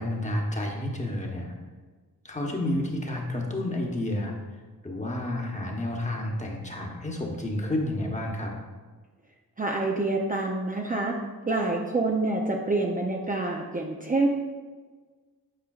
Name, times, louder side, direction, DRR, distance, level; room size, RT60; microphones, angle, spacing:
voice 1, 0.0-1.5 2.2-8.5, left 1 dB, 20° left, 0 dB, 1.1 m, -30 dB
voice 2, 9.6-11.2 11.5-14.3, right 2 dB, 25° right, -1 dB, 0.6 m, -27 dB
8.9 x 4.9 x 2.4 m, 1.4 s
cardioid pair, 80°, 37 cm